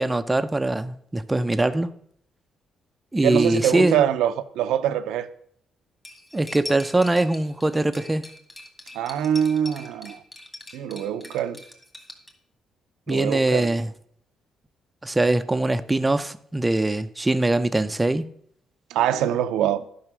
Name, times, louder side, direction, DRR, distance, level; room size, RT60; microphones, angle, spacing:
voice 1, 0.0-1.9 3.1-4.0 6.3-8.2 13.1-13.9 15.0-18.3, right 2 dB, 15° right, 0.5 m, -22 dB
voice 2, 3.2-5.3 8.9-10.2 10.7-11.6 13.1-13.7 18.9-19.8, right 10 dB, 90° right, 0.6 m, -24 dB
Cutlery silverware, 6.0-12.3, left 1 dB, 15° left, 2.3 m, -42 dB
11.0 x 5.6 x 6.1 m
cardioid pair, 90°, 0 cm